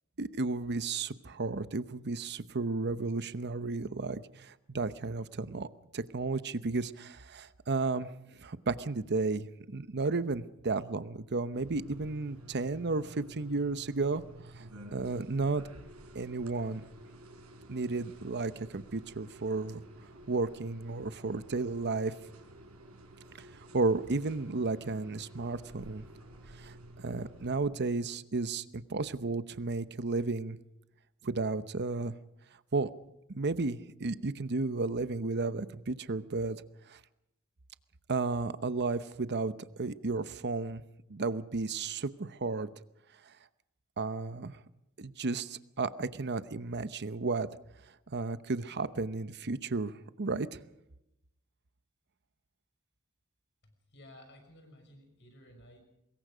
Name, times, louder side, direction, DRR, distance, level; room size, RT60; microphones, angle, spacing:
voice 1, 0.2-5.7 5.9-8.1 8.4-14.2 14.6-14.7 14.9-15.6 16.1-16.8 17.7-19.8 20.3-22.1 23.7-26.1 26.6-30.6 31.2-32.1 32.7-32.9 33.3-36.6 36.9-37.0 38.1-40.8 41.1-42.7 44.0-44.6 45.0-47.5 48.1-50.6, right 3 dB, 50° right, 13 dB, 0.9 m, -33 dB
sound 1, 11.5-27.6, right 1 dB, 80° right, 5.0 m, -52 dB
voice 2, 53.6-55.8, left 1 dB, 55° left, 5 dB, 6.0 m, -55 dB
24.0 x 21.5 x 5.1 m, 0.85 s
head